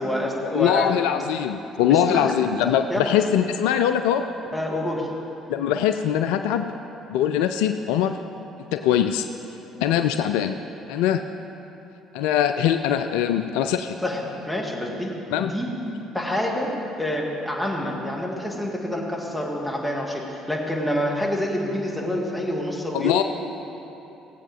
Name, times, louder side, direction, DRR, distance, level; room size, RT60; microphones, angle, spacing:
voice 1, 0.0-0.9 1.9-2.3 2.9-3.1 4.5-5.1 14.0-15.1 15.4-15.7 16.1-23.2, left 1 dB, 5° left, -2 dB, 2.2 m, -27 dB
voice 2, 0.5-4.2 5.5-6.7 7.1-8.2 8.7-9.3 9.8-10.6 10.9-11.2 12.1-14.0 15.3-15.5 22.9-23.2, left 9 dB, 70° left, 8 dB, 0.4 m, -22 dB
17.0 x 8.3 x 3.7 m, 3.0 s
hypercardioid pair, 55°, 0 cm